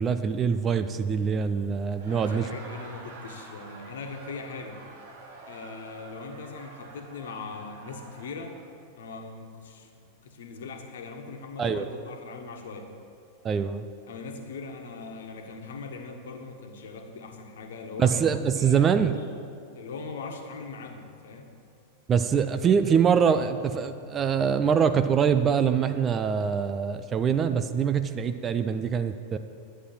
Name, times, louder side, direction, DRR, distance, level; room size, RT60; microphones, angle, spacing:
voice 1, 0.0-2.5 11.6-11.8 13.4-13.9 18.0-19.1 22.1-29.4, right 7 dB, 25° right, 10 dB, 0.6 m, -24 dB
Laughter, 1.9-8.7, right 3 dB, 55° right, 2.0 m, -47 dB
voice 2, 2.1-4.8 5.5-8.6 9.0-12.9 14.1-18.2 18.6-18.9 19.7-21.5, left 4 dB, 60° left, 4 dB, 1.5 m, -40 dB
11.5 x 9.6 x 7.4 m, 2.4 s
figure-of-eight pair, 90°, 0 cm